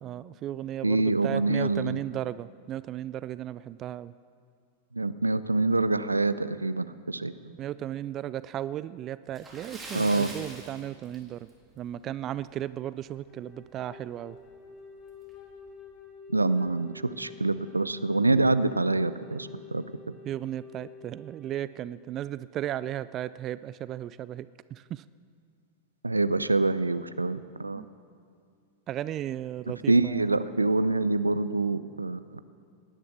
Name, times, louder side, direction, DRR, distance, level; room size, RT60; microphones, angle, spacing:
voice 1, 0.0-4.1 7.6-11.5 11.8-14.4 20.3-25.0 27.8-27.9 28.9-30.3, right 12 dB, 30° right, 17 dB, 0.3 m, -35 dB
voice 2, 0.8-2.0 4.9-7.5 9.9-10.3 16.3-19.8 26.0-27.8 29.7-32.4, right 2 dB, 80° right, 14 dB, 0.5 m, -26 dB
Splash splatter, 9.3-11.7 12.0-12.2 12.6-12.7 14.1-14.2 14.6-14.7 15.3-15.5, right 2 dB, 15° right, 3.2 m, -43 dB
Wind instrument woodwind instrument, 13.1-21.7, left 4 dB, 35° left, 4.2 m, -48 dB
18.0 x 11.0 x 7.1 m, 2.3 s
figure-of-eight pair, 90°, 0 cm